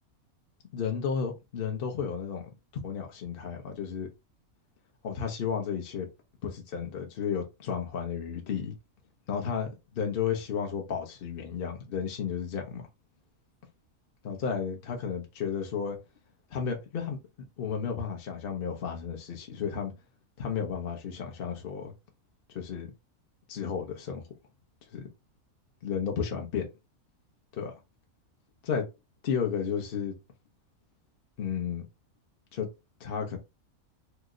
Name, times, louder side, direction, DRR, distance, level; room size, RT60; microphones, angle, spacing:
voice 1, 0.7-2.5 2.8-4.1 5.0-6.1 6.4-8.7 9.3-9.7 9.9-12.9 14.2-16.0 16.5-17.2 17.6-19.9 20.4-21.9 22.5-22.9 23.5-24.2 24.9-25.0 25.8-26.7 27.5-27.7 28.6-28.8 29.2-30.1 31.4-31.9 32.5-32.7 33.0-33.4, left 7 dB, 55° left, 0.7 m, -32 dB
2.9 x 2.1 x 3.6 m
omnidirectional pair, 1.5 m